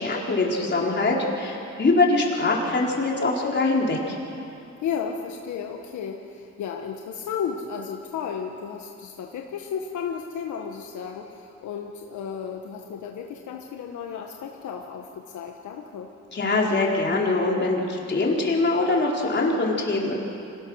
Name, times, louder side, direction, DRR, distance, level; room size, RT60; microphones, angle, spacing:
voice 1, 0.0-4.2 16.3-20.1, left 2 dB, 35° left, -2 dB, 4.3 m, -23 dB
voice 2, 4.8-16.1, left 7 dB, 75° left, 2 dB, 1.5 m, -33 dB
26.0 x 17.5 x 6.4 m, 2.7 s
cardioid pair, 90°, 30 cm